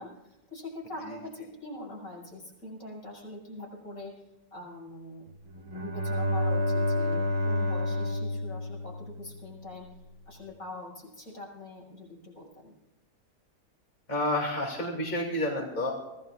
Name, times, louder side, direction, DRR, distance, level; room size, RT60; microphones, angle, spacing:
voice 1, 0.0-4.1 4.5-5.3 5.7-9.9 10.3-12.7, left 2 dB, 70° left, -2 dB, 6.7 m, -43 dB
Bowed string instrument, 5.5-9.6, left 1 dB, 85° right, 3.5 m, -29 dB
voice 2, 14.1-15.9, left 1 dB, 30° left, -1 dB, 2.8 m, -29 dB
25.5 x 17.5 x 2.5 m, 1.0 s
omnidirectional pair, 1.5 m